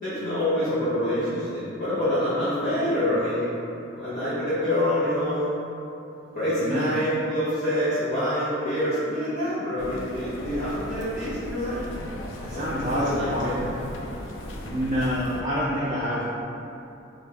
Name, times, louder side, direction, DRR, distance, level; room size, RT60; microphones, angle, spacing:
voice 1, 0.0-3.5 3.9-5.5 6.3-11.8 12.5-13.6, left 1 dB, 45° left, -13 dB, 0.8 m, -26 dB
voice 2, 6.6-7.0 12.4-13.7 14.7-16.2, equal, 40° right, -8 dB, 0.4 m, -27 dB
sound 1, 9.8-15.4, left 1 dB, 80° left, 0.4 m, -37 dB
3.2 x 2.3 x 3.9 m, 2.8 s
head